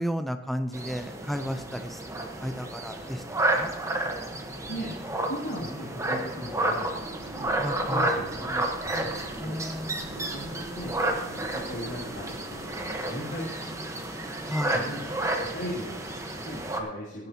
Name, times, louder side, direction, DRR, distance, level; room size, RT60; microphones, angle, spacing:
voice 1, 0.0-3.2 3.5-3.7 7.6-8.1 8.5-8.7 9.4-10.1 14.5-14.8, equal, ahead, 8 dB, 0.5 m, -33 dB
sound 1, 0.7-16.8, right 1 dB, 15° right, 1.1 m, -31 dB
voice 2, 4.7-5.0 5.3-7.5 7.9-9.6 10.1-10.9 11.2-14.1 14.6-17.3, equal, 75° left, -7 dB, 2.7 m, -38 dB
sound 2, 6.9-13.0, right 1 dB, 75° right, 1.7 m, -45 dB
17.5 x 10.5 x 2.9 m, 1.0 s
head